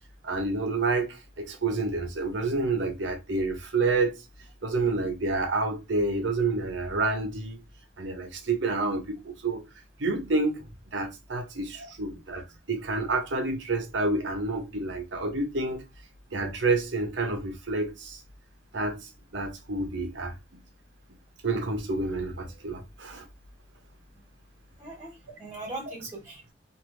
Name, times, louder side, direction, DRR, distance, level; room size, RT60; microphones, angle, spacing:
voice 1, 0.2-4.2 4.6-7.6 8.0-9.6 10.0-10.6 10.9-15.8 16.3-18.2 18.7-20.3 21.4-23.3, right 3 dB, 75° right, 0.8 m, -29 dB
voice 2, 24.8-26.5, right 2 dB, 15° right, 1.5 m, -40 dB
3.1 x 2.6 x 2.6 m
head